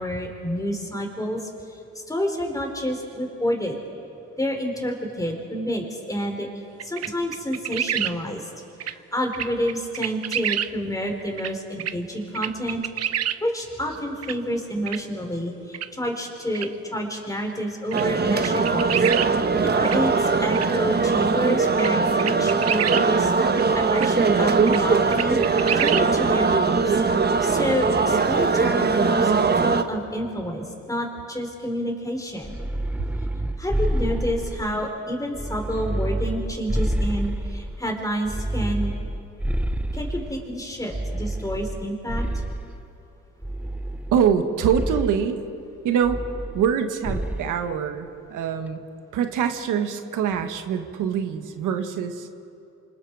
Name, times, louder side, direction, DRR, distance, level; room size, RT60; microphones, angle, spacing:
voice 1, 0.0-3.8 4.4-6.5 6.8-8.4 8.8-13.1 13.4-19.0 19.4-19.5 19.8-23.3 23.7-25.4 25.8-27.0 27.4-32.6 33.6-38.9 39.9-42.3, equal, 10° left, 2 dB, 4.8 m, -29 dB
sound 1, 6.8-8.1 8.8-8.9 9.3-10.7 11.4-11.5 11.8-11.9 12.3-13.4 14.2-14.3 14.9-15.0 15.7-15.9 16.5-16.7 17.9-18.0 18.4-19.3 19.8-20.0 20.5-20.7 21.2-21.3 21.8-21.9 22.2-23.0 23.6-23.7 23.9-24.1 24.7-24.8 25.1-26.1, right 10 dB, 55° right, 0.8 m, -27 dB
sound 2, 17.9-29.8, right 4 dB, 35° right, 1.3 m, -21 dB
sound 3, 32.4-34.9 35.3-37.8 38.3-40.4 40.9-42.8 43.4-44.4 44.7-45.2 46.0-46.8 47.1-47.5, right 1 dB, 5° right, 0.8 m, -28 dB
voice 2, 44.1-45.4 45.8-46.2 46.5-48.8 49.1-52.3, right 8 dB, 85° right, 6 dB, 1.6 m, -24 dB
28.5 x 25.5 x 4.9 m, 2.8 s
cardioid pair, 90°, 30 cm